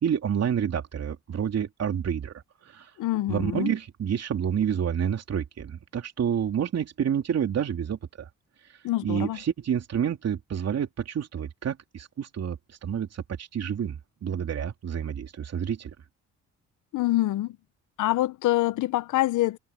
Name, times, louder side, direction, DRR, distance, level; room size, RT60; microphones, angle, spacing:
voice 1, 0.0-2.3 2.6-2.9 3.3-8.3 9.0-15.9, right 8 dB, 55° right, 3.2 m, -29 dB
voice 2, 3.0-3.7 8.8-9.4 16.9-17.6 18.0-19.6, left 16 dB, 80° left, 0.9 m, -25 dB
cardioid pair, 90°, 30 cm